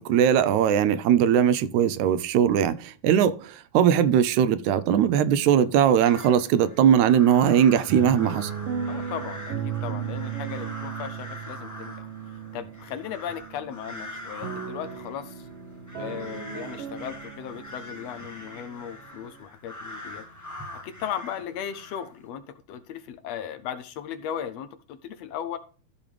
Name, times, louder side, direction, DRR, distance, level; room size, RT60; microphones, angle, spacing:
voice 1, 0.0-8.5, right 9 dB, 80° right, 2.0 m, -20 dB
sound 1, 5.6-6.4 6.7-19.4, right 8 dB, 65° right, 1.8 m, -36 dB
sound 2, 6.0-22.3, left 1 dB, 15° left, 0.7 m, -43 dB
voice 2, 8.9-11.9 12.5-15.5 16.0-20.3 20.8-25.6, left 9 dB, 75° left, 1.6 m, -36 dB
14.0 x 5.3 x 3.3 m
omnidirectional pair, 3.3 m